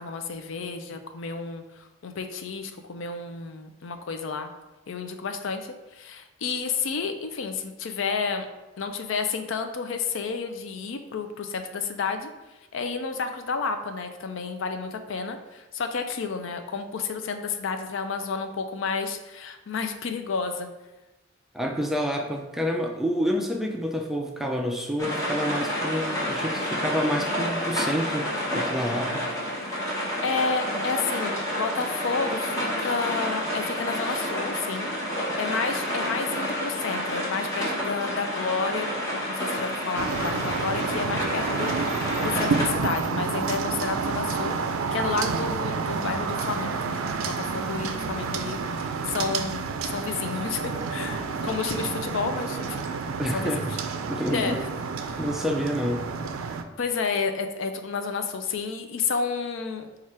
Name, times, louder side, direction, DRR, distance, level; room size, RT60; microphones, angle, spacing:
voice 1, 0.0-4.5 4.9-8.5 8.8-12.3 12.7-20.7 30.2-38.9 39.3-44.6 44.9-52.9 53.3-53.6 54.2-54.6 55.0-55.2 56.8-59.9, left 5 dB, 65° left, 7 dB, 0.4 m, -31 dB
voice 2, 21.5-28.3 28.5-29.3 53.2-53.7 54.1-54.6 55.2-56.1, equal, ahead, 1 dB, 0.4 m, -28 dB
sound 1, 25.0-42.7, equal, 15° left, 1.0 m, -29 dB
sound 2, 40.0-56.6, right 5 dB, 85° right, 0.4 m, -29 dB
4.7 x 2.4 x 4.3 m, 1.0 s
head